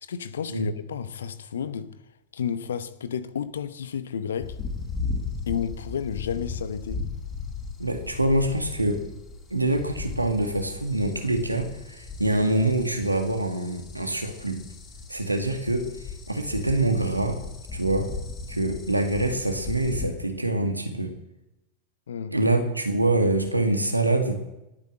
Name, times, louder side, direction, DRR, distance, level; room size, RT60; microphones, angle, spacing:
voice 1, 0.0-1.9 2.3-4.6 5.5-7.1 22.1-22.3, left 7 dB, 65° left, 1.0 m, -31 dB
sound 1, 4.4-20.1, left 4 dB, 25° left, 5.0 m, -37 dB
voice 2, 7.8-9.0 9.5-14.6 15.1-17.4 17.7-18.1 18.5-21.2 22.3-24.4, right 2 dB, 85° right, 2.0 m, -25 dB
19.5 x 9.1 x 7.7 m
figure-of-eight pair, 90°, 0 cm